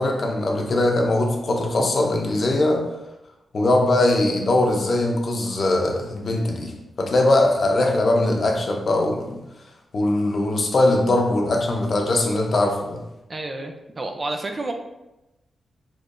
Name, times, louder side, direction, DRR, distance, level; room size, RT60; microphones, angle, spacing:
voice 1, 0.0-2.8 3.5-9.4 9.9-13.0, left 2 dB, 40° left, 1 dB, 0.7 m, -21 dB
voice 2, 13.3-14.7, right 2 dB, 25° right, 4 dB, 0.3 m, -30 dB
6.3 x 3.0 x 2.5 m, 0.95 s
wide cardioid pair, 165°, 0 cm